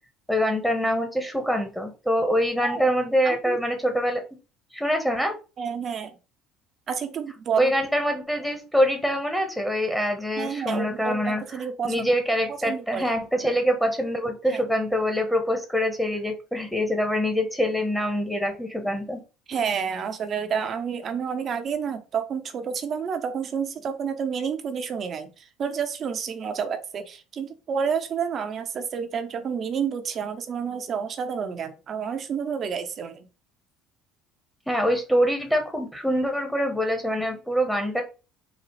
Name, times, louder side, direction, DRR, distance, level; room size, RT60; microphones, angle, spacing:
voice 1, 0.3-4.3 4.7-5.3 7.6-11.4 11.8-19.2 34.7-38.0, equal, 5° left, 4 dB, 0.9 m, -24 dB
voice 2, 2.6-2.9 3.2-3.6 5.6-6.2 6.9-7.7 10.4-12.1 12.5-13.1 14.5-14.6 19.5-33.3, right 6 dB, 45° right, 8 dB, 0.6 m, -29 dB
4.0 x 2.3 x 3.0 m, 0.32 s
hypercardioid pair, 70°, 0 cm